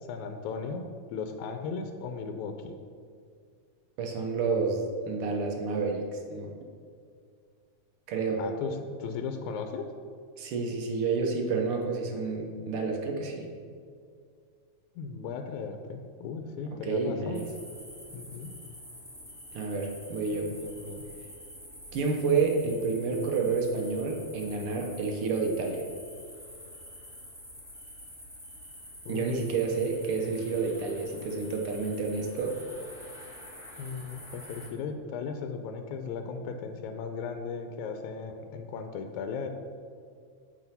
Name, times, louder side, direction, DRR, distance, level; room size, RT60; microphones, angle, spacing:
voice 1, 0.1-2.8 8.4-9.9 15.0-17.4 18.1-18.5 20.5-21.0 29.1-29.2 33.8-39.5, left 5 dB, 80° left, 6 dB, 1.8 m, -36 dB
voice 2, 4.0-6.5 8.1-8.4 10.4-13.5 16.8-17.5 19.5-20.5 21.9-25.8 29.1-32.6, right 4 dB, 70° right, 2 dB, 1.3 m, -29 dB
sound 1, 17.3-34.7, equal, 5° right, 0.3 m, -47 dB
7.6 x 4.9 x 5.4 m, 2.2 s
omnidirectional pair, 3.4 m